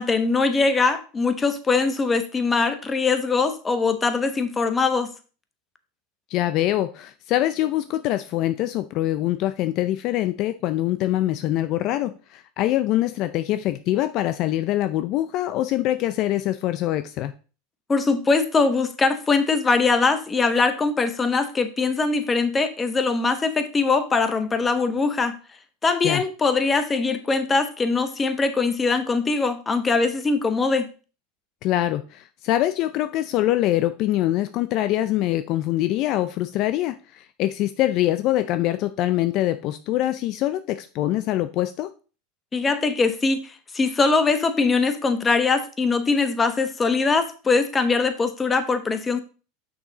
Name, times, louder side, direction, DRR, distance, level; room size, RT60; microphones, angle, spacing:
voice 1, 0.0-5.1 17.9-25.4 25.8-30.9 42.5-49.2, left 4 dB, 20° left, 9 dB, 1.0 m, -22 dB
voice 2, 6.3-17.3 26.0-26.2 31.6-41.9, left 14 dB, 50° left, 11 dB, 0.5 m, -24 dB
6.2 x 6.1 x 4.0 m, 0.36 s
hypercardioid pair, 105°, 0 cm